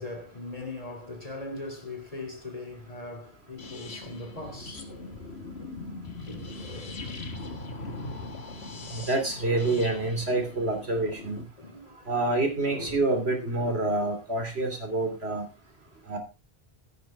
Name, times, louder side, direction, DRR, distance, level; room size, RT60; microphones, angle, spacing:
voice 1, 0.0-5.2 6.3-7.0 8.1-8.3 9.5-9.9 11.6-12.1 12.6-13.0, left 2 dB, 35° left, 3.5 m, -40 dB
sound 1, 3.6-11.4, left 2 dB, 90° left, 1.9 m, -40 dB
voice 2, 8.9-11.4 12.1-15.4 16.1-16.2, right 2 dB, 90° right, 3.4 m, -27 dB
15.5 x 9.3 x 3.5 m
omnidirectional pair, 1.0 m